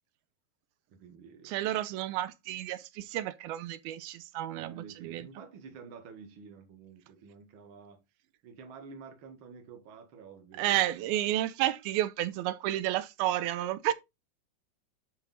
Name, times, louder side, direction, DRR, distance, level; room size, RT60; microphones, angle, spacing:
voice 1, 0.9-1.5 4.5-8.0 8.4-11.1, right 5 dB, 40° right, 2.1 m, -49 dB
voice 2, 1.5-5.3 10.6-13.9, right 13 dB, 85° right, 2.5 m, -31 dB
10.5 x 5.1 x 3.8 m
omnidirectional pair, 4.3 m